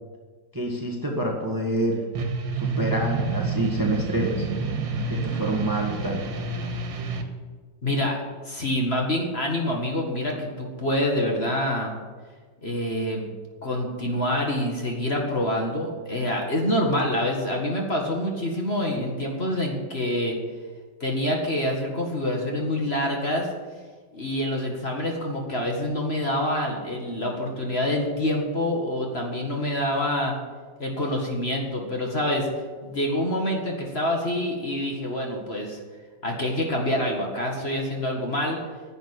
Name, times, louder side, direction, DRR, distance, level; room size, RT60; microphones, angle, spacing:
voice 1, 0.5-2.0 2.5-4.5 5.1-6.2, right 1 dB, 10° right, 0 dB, 1.5 m, -27 dB
sound 1, 2.1-7.2, right 4 dB, 85° right, 2.1 m, -29 dB
voice 2, 7.8-8.2 8.5-12.0 12.6-13.3 13.6-20.4 21.0-23.5 24.1-30.4 30.8-32.5 32.8-35.8 36.2-38.6, left 1 dB, 35° left, 0 dB, 2.0 m, -26 dB
11.0 x 8.0 x 9.9 m, 1.5 s
omnidirectional pair, 2.0 m